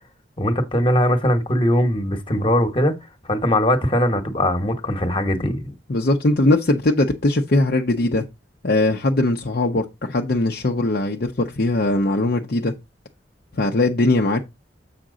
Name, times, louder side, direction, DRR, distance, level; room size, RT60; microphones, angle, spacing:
voice 1, 0.4-2.9 3.2-5.7, left 1 dB, 30° left, 1.3 m, -20 dB
voice 2, 5.9-8.2 8.6-12.7 13.5-14.4, left 2 dB, 55° left, 0.8 m, -20 dB
7.5 x 5.9 x 3.8 m
head